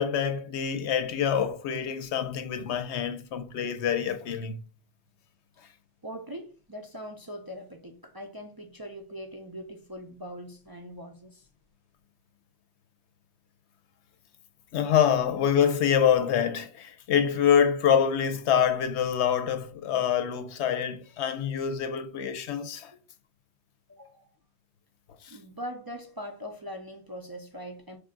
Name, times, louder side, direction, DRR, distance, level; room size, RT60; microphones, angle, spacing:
voice 1, 0.0-4.6 14.7-22.9 25.2-25.4, left 8 dB, 90° left, 0.9 m, -26 dB
voice 2, 6.0-11.5 23.9-24.3 25.3-28.0, equal, 35° right, 0.4 m, -41 dB
5.1 x 2.5 x 3.7 m
omnidirectional pair, 1.1 m